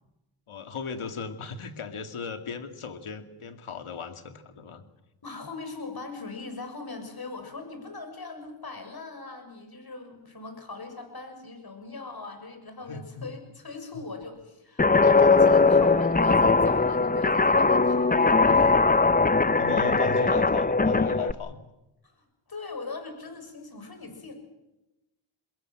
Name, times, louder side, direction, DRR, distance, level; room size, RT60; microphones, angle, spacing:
voice 1, 0.5-4.8 12.9-13.3 19.6-21.7, left 5 dB, 75° left, 8 dB, 2.5 m, -36 dB
voice 2, 5.2-19.1 22.0-24.3, left 3 dB, 45° left, 6 dB, 6.8 m, -40 dB
Guitar, 14.8-21.3, left 3 dB, 15° left, 0.8 m, -20 dB
23.0 x 21.5 x 7.7 m, 0.99 s
cardioid pair, 60°, 50 cm